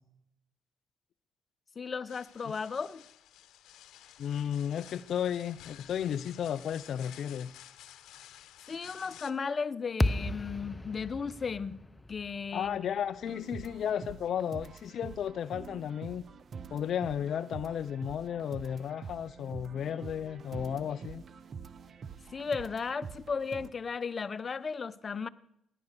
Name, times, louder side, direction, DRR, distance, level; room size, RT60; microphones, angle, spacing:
voice 1, 1.8-3.0 8.7-11.8 12.1-12.8 22.3-25.3, left 5 dB, 40° left, 0.9 m, -35 dB
sound 1, 2.1-9.3, left 12 dB, 80° left, 1.0 m, -53 dB
voice 2, 4.2-7.6 12.5-16.2 16.7-21.2, left 9 dB, 65° left, 0.5 m, -34 dB
sound 2, 10.0-14.3, left 1 dB, 15° left, 1.1 m, -35 dB
sound 3, 13.2-23.7, right 6 dB, 55° right, 0.9 m, -46 dB
17.5 x 11.0 x 6.7 m
supercardioid pair, 70°, 0 cm